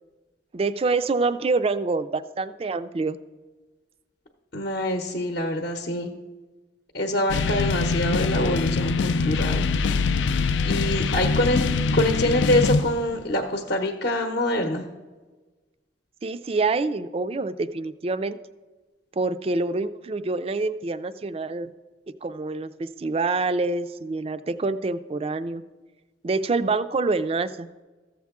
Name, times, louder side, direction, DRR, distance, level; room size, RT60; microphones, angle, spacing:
voice 1, 0.5-3.2 16.2-18.4 19.1-21.7 22.2-25.6 26.2-27.7, right 3 dB, 30° right, 13 dB, 0.3 m, -26 dB
voice 2, 4.5-6.1 6.9-9.7 10.6-11.6 11.9-14.8, left 1 dB, 55° left, 4 dB, 0.8 m, -25 dB
sound 1, 7.3-13.2, left 4 dB, 75° left, 0.4 m, -24 dB
14.0 x 7.4 x 3.6 m, 1.3 s
head